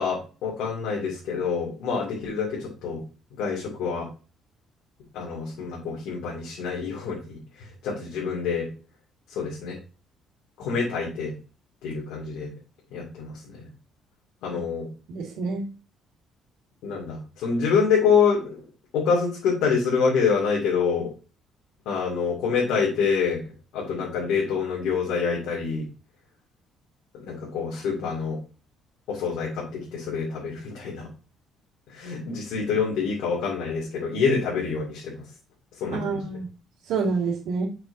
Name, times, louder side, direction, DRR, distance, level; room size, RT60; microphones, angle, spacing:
voice 1, 0.0-3.0 3.4-4.1 5.1-7.4 7.8-8.7 9.3-9.8 10.6-11.3 11.8-12.5 12.9-13.6 14.4-14.9 16.8-18.6 18.9-21.1 21.9-23.4 23.7-25.9 27.1-28.4 29.1-31.1 31.9-35.2 35.8-36.2, left 5 dB, 85° left, -4 dB, 2.2 m, -26 dB
voice 2, 15.1-15.6 35.9-36.5 36.8-37.7, right 4 dB, 85° right, -7 dB, 2.1 m, -27 dB
6.8 x 5.9 x 2.6 m, 0.34 s
cardioid pair, 120°, 0 cm